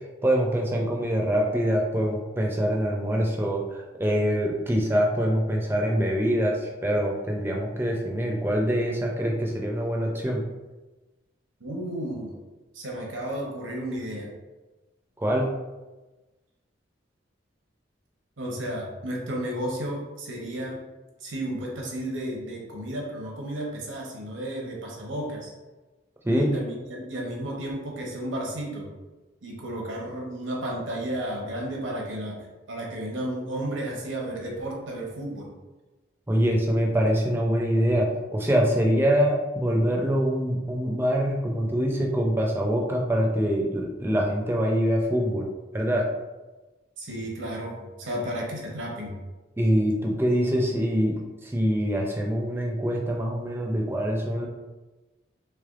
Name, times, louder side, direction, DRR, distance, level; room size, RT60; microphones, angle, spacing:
voice 1, 0.2-10.4 15.2-15.5 26.2-26.6 36.3-45.5 45.7-46.1 49.6-51.2 51.4-54.5, equal, 10° right, -1 dB, 0.4 m, -24 dB
voice 2, 11.6-12.3 12.7-14.3 18.4-20.8 21.2-25.5 26.4-28.9 29.4-35.5 47.0-49.2, right 1 dB, 85° right, -2 dB, 0.8 m, -33 dB
3.3 x 3.3 x 2.4 m, 1.2 s
head